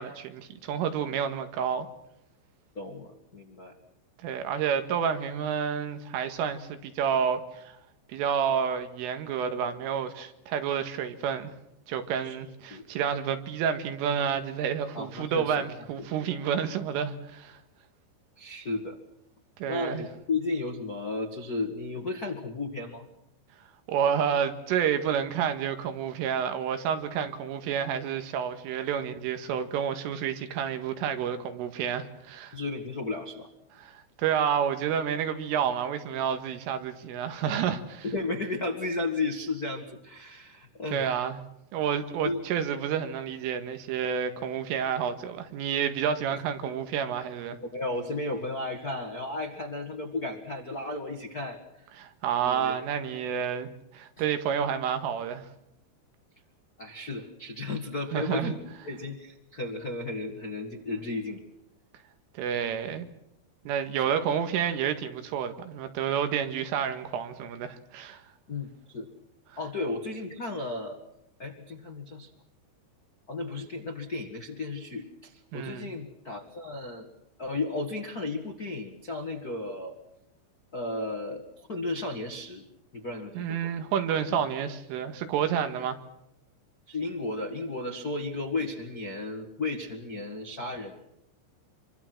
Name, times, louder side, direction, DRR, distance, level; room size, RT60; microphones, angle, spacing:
voice 1, 0.0-1.9 4.2-7.8 8.1-11.5 11.9-17.6 19.6-20.1 23.9-32.6 33.8-38.1 40.9-41.4 41.7-47.6 52.0-55.5 58.1-58.6 62.4-63.1 63.7-68.2 75.5-75.9 83.4-86.0, right 8 dB, 85° right, 4.4 m, -29 dB
voice 2, 2.7-3.7 12.2-12.4 12.7-12.8 14.9-15.6 16.0-16.1 18.4-19.0 19.7-23.1 32.5-33.5 38.0-41.3 42.2-42.4 46.6-46.7 47.5-51.9 52.4-52.7 54.2-54.3 56.8-61.4 62.6-62.7 63.9-64.0 68.5-69.1 69.6-71.0 71.4-72.3 73.3-77.1 77.4-80.0 80.7-82.6 82.9-83.7 84.3-84.4 84.7-84.8 86.9-90.9, left 2 dB, 65° left, 0.9 m, -34 dB
27.0 x 24.0 x 6.2 m
omnidirectional pair, 5.6 m